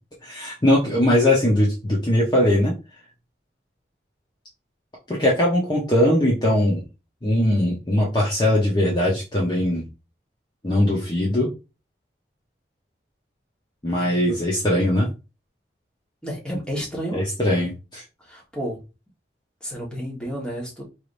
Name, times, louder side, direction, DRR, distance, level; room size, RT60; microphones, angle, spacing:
voice 1, 0.2-2.7 5.1-6.8 7.2-9.8 10.6-11.5 13.8-15.1 17.1-18.0, left 1 dB, 25° left, -4 dB, 0.9 m, -20 dB
voice 2, 16.2-17.2 18.2-18.8 19.6-20.8, equal, 5° left, -3 dB, 1.4 m, -31 dB
4.6 x 3.3 x 2.6 m, 0.28 s
head